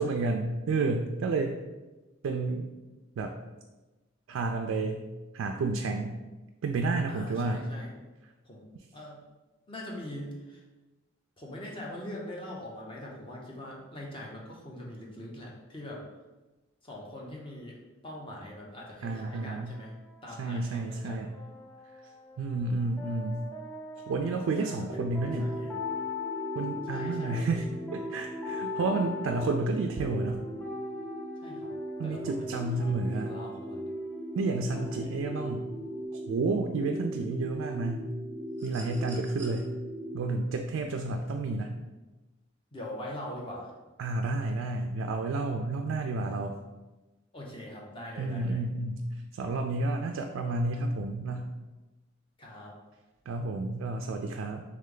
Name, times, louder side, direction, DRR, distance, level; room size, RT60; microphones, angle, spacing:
voice 1, 0.0-1.6 2.2-2.7 3.2-3.4 4.3-5.0 5.3-6.2 6.6-7.7 19.0-19.8 20.4-21.3 22.4-23.4 24.1-25.5 26.6-27.6 27.9-30.4 32.0-33.3 34.4-35.6 36.1-38.1 38.6-39.7 40.1-41.7 44.0-46.6 48.2-49.1 49.3-51.5 53.3-54.6, right 3 dB, 70° right, 4 dB, 0.3 m, -30 dB
voice 2, 7.1-7.9 8.5-8.7 8.9-9.2 9.7-10.6 11.4-16.0 16.8-19.9 20.2-21.2 24.6-25.7 26.9-27.5 31.4-31.7 32.0-33.9 34.7-35.2 42.7-43.7 47.3-48.6 52.4-52.7, left 1 dB, 25° left, -2 dB, 0.7 m, -42 dB
sound 1, 18.6-36.1, left 5 dB, 10° left, 0.4 m, -43 dB
sound 2, 24.9-40.1, right 1 dB, 80° left, 1.1 m, -38 dB
sound 3, 38.6-39.6 41.1-41.2, right 3 dB, 10° right, 0.8 m, -49 dB
3.4 x 3.2 x 3.8 m, 1.1 s
head